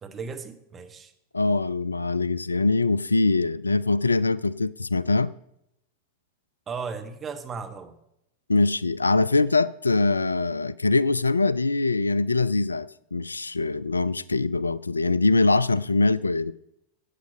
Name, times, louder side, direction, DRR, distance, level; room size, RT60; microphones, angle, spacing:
voice 1, 0.0-1.1 6.7-7.9, right 5 dB, 20° right, 1.4 m, -36 dB
voice 2, 1.3-5.3 8.5-16.5, left 3 dB, 80° left, 0.3 m, -23 dB
12.5 x 8.3 x 5.3 m
figure-of-eight pair, 90°, 0 cm